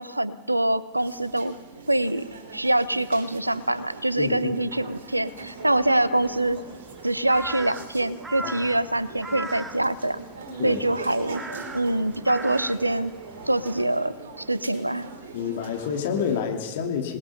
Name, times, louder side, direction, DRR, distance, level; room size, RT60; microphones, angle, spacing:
voice 1, 0.0-1.6 1.9-6.6 7.0-10.2 10.6-11.4 11.7-13.1 13.5-15.1, right 1 dB, 85° right, 17 dB, 0.8 m, -25 dB
sound 1, 0.9-16.4, right 3 dB, 60° right, 3.5 m, -41 dB
voice 2, 4.2-4.5 8.4-8.5 10.6-10.8 15.3-17.2, left 7 dB, 55° left, 3 dB, 2.9 m, -28 dB
Crow, 5.3-13.8, right 3 dB, 15° right, 1.3 m, -40 dB
27.0 x 20.0 x 5.6 m, 1.3 s
figure-of-eight pair, 90°, 0 cm